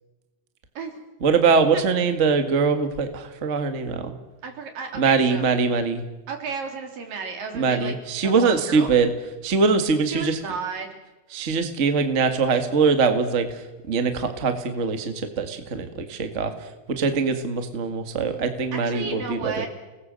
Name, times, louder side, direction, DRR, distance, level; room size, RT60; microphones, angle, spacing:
voice 1, 1.2-4.1 5.0-6.0 7.5-9.1 9.4-10.4 11.3-13.5 13.9-16.5 16.9-19.7, right 5 dB, 30° right, 7 dB, 1.5 m, -22 dB
voice 2, 4.4-5.4 6.3-7.9 8.2-8.9 10.1-11.0 18.7-19.7, right 4 dB, 85° right, 3 dB, 5.1 m, -33 dB
30.0 x 20.0 x 7.7 m, 1.1 s
omnidirectional pair, 3.9 m